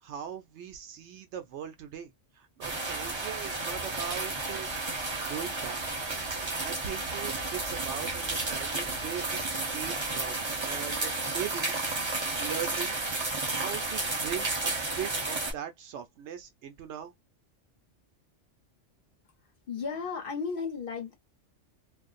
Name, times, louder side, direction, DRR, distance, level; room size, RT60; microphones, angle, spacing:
voice 1, 0.0-4.7 5.1-5.8 6.6-9.4 9.7-11.8 12.2-13.0 13.4-17.1, right 9 dB, 70° right, 0.8 m, -40 dB
sound 1, 2.6-15.5, right 3 dB, 30° right, 0.6 m, -32 dB
voice 2, 19.7-21.1, left 5 dB, 50° left, 0.9 m, -34 dB
2.5 x 2.0 x 2.4 m
omnidirectional pair, 1.2 m